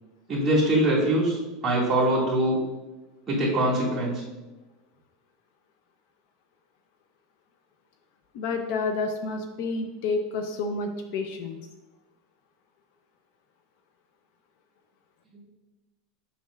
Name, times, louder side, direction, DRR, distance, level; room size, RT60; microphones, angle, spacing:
voice 1, 0.3-2.6 3.3-4.1, right 1 dB, 15° right, -7 dB, 2.0 m, -23 dB
voice 2, 8.3-11.6, left 3 dB, 60° left, 6 dB, 0.6 m, -29 dB
7.2 x 5.5 x 2.4 m, 1.1 s
supercardioid pair, 160°, 0 cm